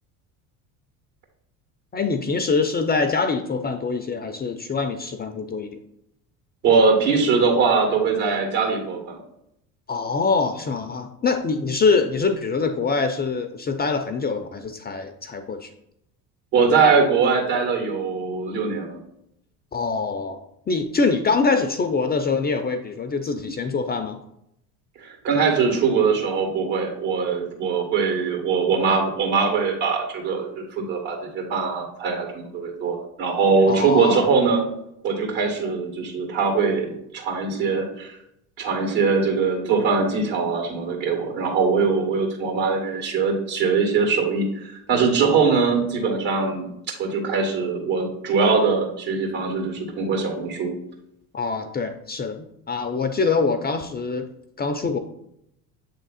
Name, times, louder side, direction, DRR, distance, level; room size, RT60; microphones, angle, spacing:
voice 1, 1.9-5.8 9.9-15.7 19.7-20.4 20.7-24.2 33.7-34.3 51.3-54.3 54.6-55.0, left 4 dB, 20° left, 7 dB, 0.5 m, -24 dB
voice 2, 6.6-9.2 16.5-19.0 25.0-34.6 35.0-38.2 38.6-50.7, right 5 dB, 65° right, 2 dB, 2.3 m, -22 dB
7.5 x 3.6 x 4.1 m, 0.78 s
hypercardioid pair, 80°, 45 cm